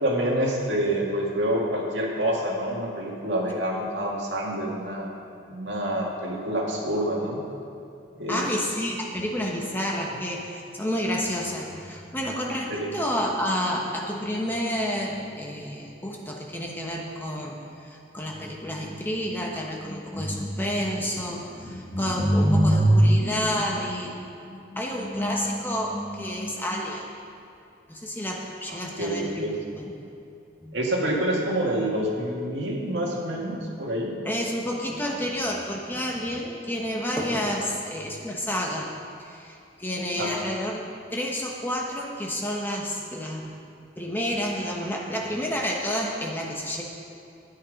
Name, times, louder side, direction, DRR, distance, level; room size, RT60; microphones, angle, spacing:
voice 1, 0.0-5.1 5.5-7.4 8.2-8.6 12.7-12.9 29.0-29.6 30.7-34.1 40.2-40.3, right 1 dB, 70° right, -2 dB, 2.1 m, -27 dB
voice 2, 8.3-27.1 27.9-29.9 30.6-30.8 34.2-38.9 39.2-40.8 41.1-43.5 44.0-46.8, equal, 10° left, -1 dB, 1.1 m, -28 dB
12.0 x 9.6 x 5.2 m, 2.7 s
head